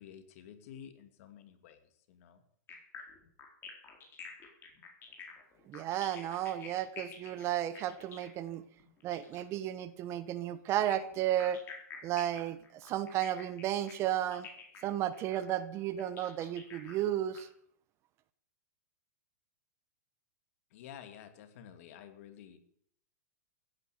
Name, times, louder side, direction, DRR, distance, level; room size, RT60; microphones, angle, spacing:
voice 1, 0.0-1.8 2.1-2.4 20.7-22.6, left 9 dB, 55° left, 8 dB, 2.5 m, -51 dB
sound 1, 2.7-9.5 10.7-17.4, left 6 dB, 25° left, 4.4 m, -50 dB
voice 2, 5.7-8.6 9.0-11.6 12.0-14.5 14.8-17.5, right 12 dB, 30° right, 15 dB, 1.0 m, -33 dB
15.5 x 9.7 x 7.9 m, 0.67 s
supercardioid pair, 150°, 9 cm